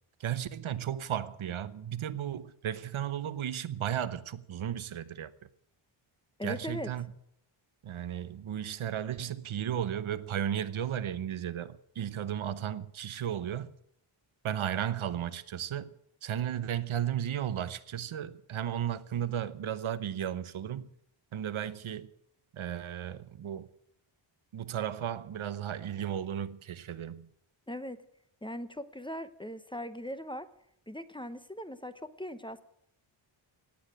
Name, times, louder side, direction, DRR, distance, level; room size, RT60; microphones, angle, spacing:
voice 1, 0.2-5.3 6.4-7.1 7.8-13.7 14.4-15.9 16.2-20.9 21.3-22.1 22.5-23.7 24.5-27.3, right 10 dB, 80° right, 1.0 m, -34 dB
voice 2, 6.4-6.9 27.7-28.0 28.4-30.5 30.9-32.6, equal, 10° left, 0.8 m, -39 dB
17.5 x 8.8 x 9.0 m
wide cardioid pair, 145°, 48 cm